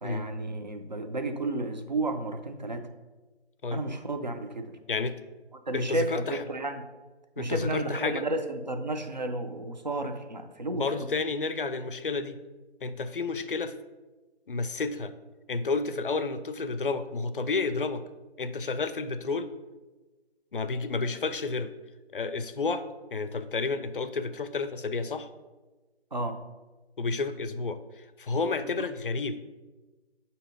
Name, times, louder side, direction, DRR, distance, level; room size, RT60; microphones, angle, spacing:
voice 1, 0.0-2.9 3.7-4.8 5.7-6.8 7.4-11.1 26.1-26.4 28.8-28.9, right 2 dB, 45° right, 6 dB, 0.5 m, -32 dB
voice 2, 5.7-6.4 7.4-8.2 10.7-12.4 12.8-13.7 14.5-15.1 15.5-18.0 18.4-19.5 20.5-21.7 22.1-22.9 23.1-25.3 27.0-29.4, left 4 dB, 55° left, 11 dB, 0.4 m, -31 dB
7.3 x 2.8 x 5.0 m, 1.2 s
figure-of-eight pair, 165°, 33 cm